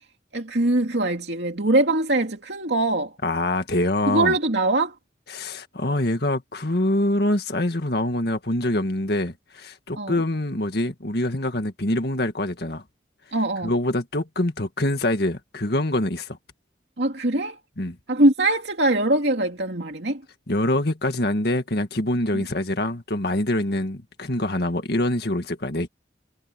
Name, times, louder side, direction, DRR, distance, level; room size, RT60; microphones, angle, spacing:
voice 1, 0.3-3.1 4.1-4.9 10.0-10.2 13.3-13.7 17.0-17.6 18.1-20.2 22.3-22.4, right 2 dB, 70° right, 2.6 m, -22 dB
voice 2, 3.2-4.4 5.3-12.8 13.6-16.4 17.8-18.0 20.5-25.9, left 1 dB, 60° left, 2.0 m, -25 dB
head